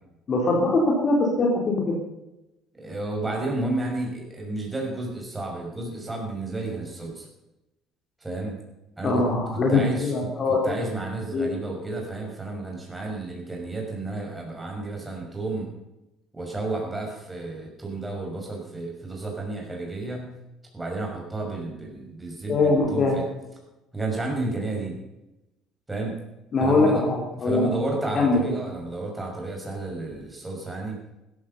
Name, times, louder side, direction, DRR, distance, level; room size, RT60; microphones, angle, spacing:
voice 1, 0.3-2.0 9.0-10.7 11.3-11.5 22.5-23.2 26.5-27.7 28.1-28.4, left 3 dB, 35° left, -1 dB, 3.8 m, -22 dB
voice 2, 2.7-7.3 8.2-8.5 9.0-9.2 9.5-15.7 16.3-20.3 20.7-23.3 23.9-25.0 25.9-26.2 26.6-27.0 27.4-31.0, right 2 dB, 10° right, 0 dB, 6.1 m, -32 dB
16.0 x 14.0 x 5.5 m, 0.96 s
cardioid pair, 135°, 0 cm